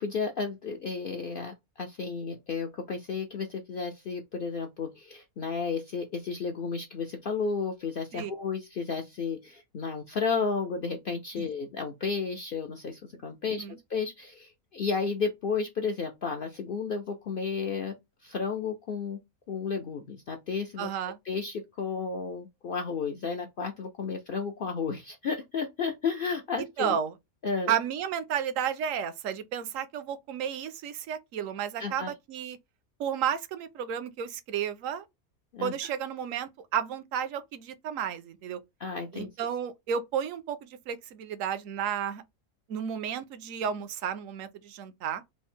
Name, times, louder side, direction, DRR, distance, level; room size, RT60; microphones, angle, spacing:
voice 1, 0.0-13.6 13.9-17.9 18.2-19.2 19.5-20.9 21.3-27.0 27.4-27.7 31.8-32.1 35.5-35.9 38.8-39.3, left 5 dB, 70° left, 0.5 m, -32 dB
voice 2, 20.8-21.2 26.8-27.1 27.7-32.6 33.0-35.0 35.6-38.6 39.1-42.2 42.7-45.2, right 8 dB, 70° right, 0.9 m, -32 dB
3.5 x 2.0 x 4.3 m
omnidirectional pair, 1.5 m